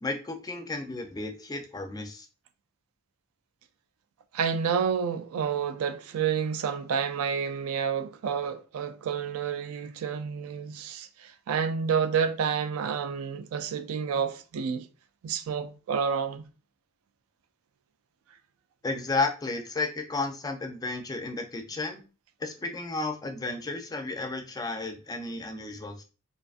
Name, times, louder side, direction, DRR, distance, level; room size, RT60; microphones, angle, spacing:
voice 1, 0.0-2.3 18.8-22.0 22.4-26.0, left 3 dB, 20° left, 0.4 m, -33 dB
voice 2, 4.3-14.9 15.2-16.4, right 6 dB, 85° right, 0.3 m, -29 dB
2.5 x 2.4 x 2.4 m
head